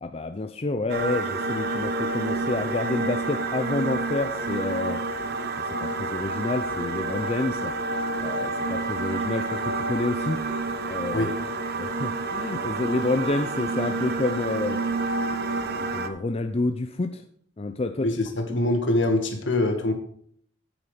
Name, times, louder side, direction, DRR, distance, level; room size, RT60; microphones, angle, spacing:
voice 1, 0.0-5.0 5.5-7.8 8.2-10.5 10.9-11.3 11.8-14.8 15.6-17.2 17.6-18.1 18.5-18.6, left 2 dB, 30° left, 7 dB, 0.6 m, -29 dB
sound 1, 0.9-16.1, right 3 dB, 55° right, 1.1 m, -29 dB
voice 2, 18.0-19.9, left 1 dB, 70° left, 5 dB, 2.2 m, -24 dB
9.5 x 8.7 x 5.1 m, 0.62 s
head